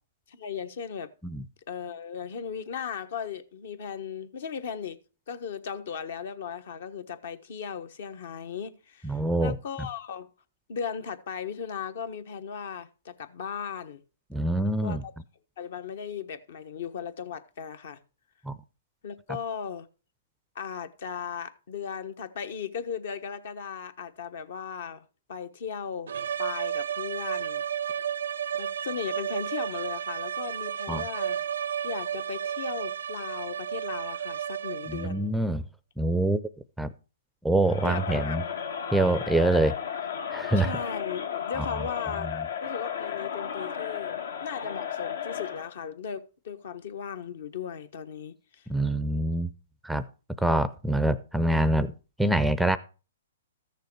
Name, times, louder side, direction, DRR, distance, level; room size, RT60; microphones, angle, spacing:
voice 1, 0.3-1.1 1.7-5.0 5.3-10.3 10.7-14.0 14.8-15.1 15.6-18.0 19.0-19.9 20.5-26.1 26.4-27.6 28.5-31.4 31.8-35.3 37.8-38.4 40.6-48.7, left 7 dB, 60° left, 1.2 m, -37 dB
voice 2, 9.0-9.6 14.3-15.0 18.4-18.6 30.9-31.0 34.9-35.6 36.0-36.4 36.8-36.9 37.4-38.4 38.9-39.8 40.3-40.7 41.6-41.7 42.2-42.3 48.7-49.5 49.8-50.0 50.4-51.9 52.2-52.8, right 1 dB, ahead, 0.5 m, -25 dB
sound 1, 26.1-35.3, right 9 dB, 75° right, 0.5 m, -32 dB
Crowd, 37.6-45.7, left 8 dB, 75° left, 1.6 m, -34 dB
14.0 x 6.6 x 4.6 m
hypercardioid pair, 135°, 0 cm